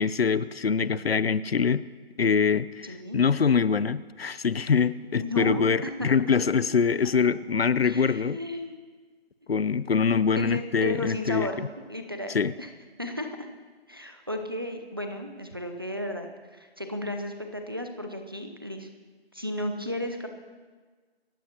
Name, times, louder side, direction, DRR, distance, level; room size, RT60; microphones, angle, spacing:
voice 1, 0.0-1.8 2.2-8.4 9.5-11.7 12.3-12.5, left 6 dB, 65° left, 17 dB, 0.7 m, -24 dB
voice 2, 2.8-3.2 5.2-6.1 7.8-8.7 10.3-12.7 13.0-13.5 13.9-18.9 19.3-20.3, left 1 dB, 20° right, 5 dB, 0.7 m, -34 dB
27.5 x 15.5 x 3.0 m, 1.4 s
figure-of-eight pair, 175°, 32 cm